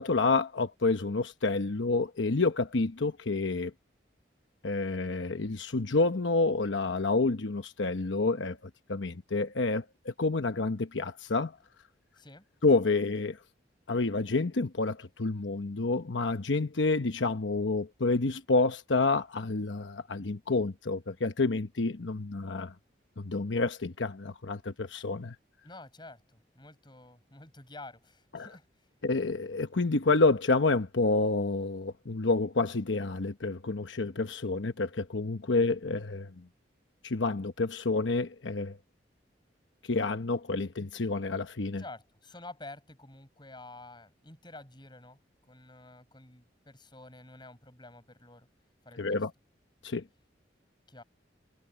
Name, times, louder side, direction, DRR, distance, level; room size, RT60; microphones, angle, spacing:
voice 1, 0.0-3.7 4.6-8.6 8.9-11.6 12.6-13.4 13.9-22.7 23.2-25.4 28.3-28.5 29.0-36.4 37.0-38.8 39.8-41.8 49.0-49.3 49.8-50.0, left 3 dB, 85° left, 1.0 m, -29 dB
voice 2, 12.1-12.5 25.6-28.9 41.8-45.2 45.5-48.5 48.8-49.2 50.9-51.0, left 2 dB, 25° left, 7.9 m, -49 dB
head